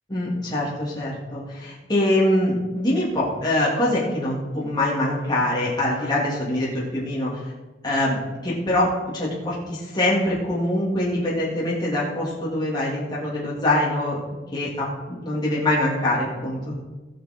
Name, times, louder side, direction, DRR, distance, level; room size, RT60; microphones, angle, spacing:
voice 1, 0.1-7.3 7.8-14.2 14.5-16.7, left 1 dB, 25° left, -7 dB, 3.2 m, -24 dB
18.5 x 6.2 x 4.8 m, 1.2 s
head